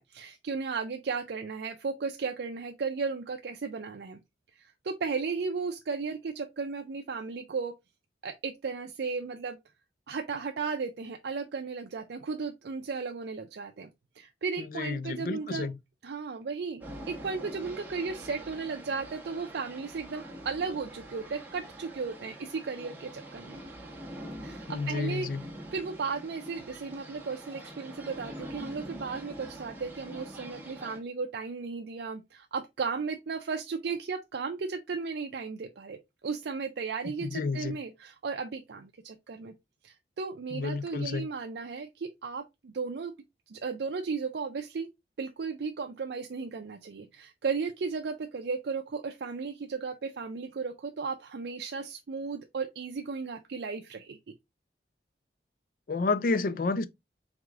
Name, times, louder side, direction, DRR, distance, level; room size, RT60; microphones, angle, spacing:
voice 1, 0.0-4.2 4.5-7.7 8.2-9.6 10.1-13.9 14.2-15.7 16.0-23.6 24.4-25.3 25.7-39.5 39.8-43.1 43.5-44.9 45.2-54.2, right 5 dB, 75° right, 0.4 m, -35 dB
voice 2, 14.7-15.8 24.7-25.4 37.2-37.8 40.5-41.3 55.9-56.9, left 3 dB, 50° left, 0.4 m, -30 dB
sound 1, 16.8-31.0, right 1 dB, 10° right, 1.2 m, -45 dB
4.9 x 3.6 x 2.4 m
head